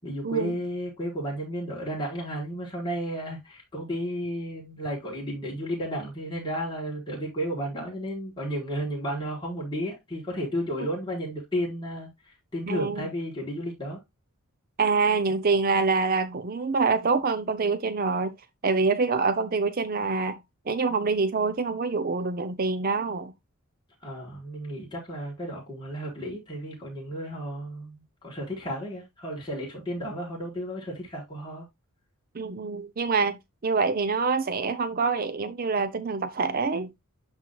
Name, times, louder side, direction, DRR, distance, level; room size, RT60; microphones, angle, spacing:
voice 1, 0.0-14.0 24.0-31.7, equal, 20° left, 4.5 m, -33 dB
voice 2, 12.7-13.1 14.8-18.3 18.6-20.4 20.7-23.3 32.3-36.9, right 4 dB, 40° right, 0.6 m, -26 dB
12.0 x 4.4 x 2.2 m
head